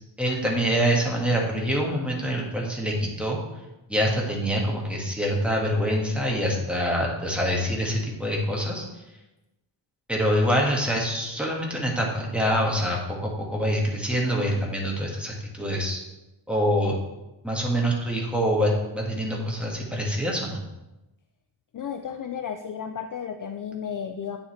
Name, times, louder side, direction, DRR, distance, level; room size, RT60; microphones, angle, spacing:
voice 1, 0.2-3.4 3.9-9.0 10.1-16.0 16.5-17.0 17.4-20.6, equal, ahead, -2 dB, 1.7 m, -25 dB
voice 2, 21.7-24.4, left 7 dB, 45° left, 6 dB, 0.5 m, -33 dB
9.4 x 7.2 x 3.2 m, 0.99 s
wide cardioid pair, 125°, 47 cm